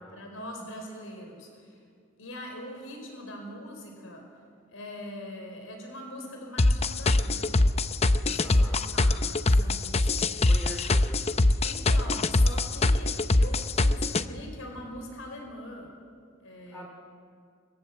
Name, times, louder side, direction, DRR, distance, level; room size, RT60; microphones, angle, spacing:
voice 1, 0.0-1.8 2.2-4.2 4.7-7.8 8.2-10.3 11.6-15.9 16.4-16.8, left 1 dB, 85° left, 2 dB, 4.5 m, -42 dB
sound 1, 6.6-14.2, left 2 dB, 30° left, 0.7 m, -22 dB
voice 2, 8.4-8.8 10.5-11.4 16.7-16.9, equal, 10° left, -1 dB, 2.7 m, -43 dB
25.0 x 21.5 x 7.7 m, 2.3 s
head